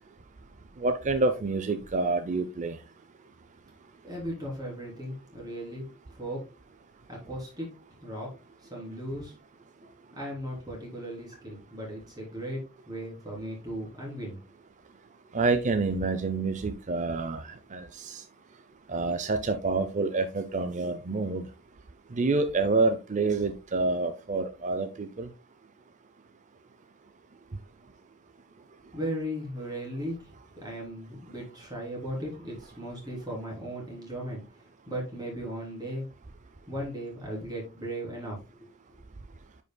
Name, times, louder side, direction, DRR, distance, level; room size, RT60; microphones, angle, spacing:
voice 1, 0.8-2.8 15.3-17.4 17.7-18.2 18.9-21.5 22.1-25.3, right 3 dB, 35° right, 8 dB, 0.5 m, -27 dB
voice 2, 4.0-6.4 7.1-7.7 8.0-8.3 8.6-9.4 10.1-14.4 28.9-36.1 36.7-38.7, equal, 20° right, -3 dB, 3.5 m, -37 dB
9.8 x 5.4 x 2.2 m, 0.29 s
head